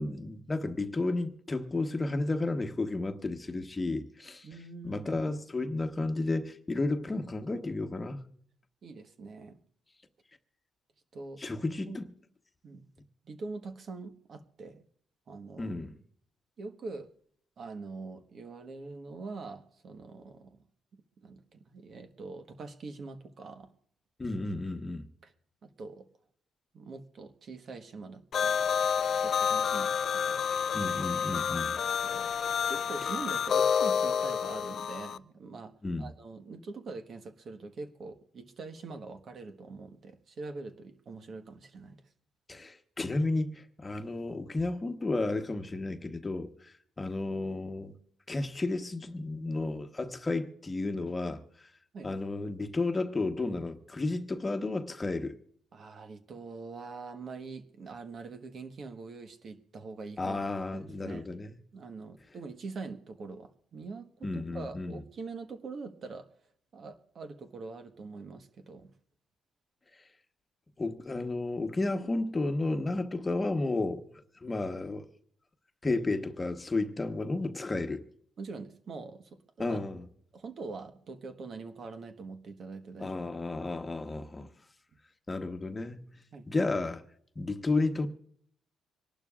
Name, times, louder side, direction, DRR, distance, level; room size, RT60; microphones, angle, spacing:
voice 1, 0.0-4.4 4.8-8.2 11.4-12.1 15.6-16.0 24.2-25.1 30.7-31.7 35.8-36.0 42.5-46.5 47.0-48.0 48.3-51.4 52.0-55.3 60.2-61.5 64.2-64.9 70.8-74.0 74.4-75.1 75.8-78.0 79.6-80.0 83.0-84.5 85.3-86.1 86.5-87.0 87.4-88.1, left 2 dB, 25° left, 1.2 m, -32 dB
voice 2, 4.4-5.1 8.8-9.6 11.1-11.4 11.9-12.0 12.6-12.9 13.2-14.8 15.3-15.8 16.6-17.1 17.6-20.6 20.9-23.7 25.2-25.3 25.6-26.1 26.7-28.6 29.2-30.4 31.3-42.0 51.9-52.1 55.7-60.4 60.7-61.4 61.7-66.3 66.7-68.9 78.4-79.8 80.3-83.2 86.3-86.5, right 4 dB, 55° right, 1.3 m, -44 dB
sound 1, 28.3-35.2, left 7 dB, 60° left, 0.4 m, -29 dB
26.0 x 11.5 x 2.4 m
cardioid pair, 90°, 0 cm